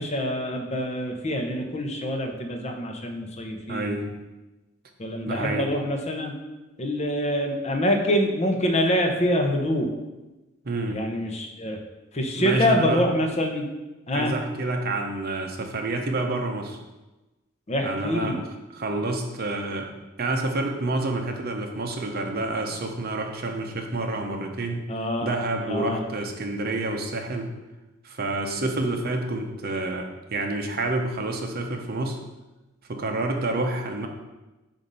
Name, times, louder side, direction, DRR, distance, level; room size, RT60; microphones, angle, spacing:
voice 1, 0.0-4.2 5.0-6.3 6.8-9.9 10.9-11.8 12.1-13.7 14.1-14.3 17.7-18.4 24.9-25.3 25.7-26.0, equal, 35° left, 3 dB, 0.7 m, -25 dB
voice 2, 3.7-4.0 5.3-5.7 10.6-11.0 12.3-13.0 14.1-16.8 17.8-19.9 20.2-24.8 25.2-27.5 28.0-32.2 32.9-34.1, right 2 dB, 50° right, 3 dB, 0.7 m, -28 dB
7.2 x 2.6 x 5.3 m, 1.1 s
head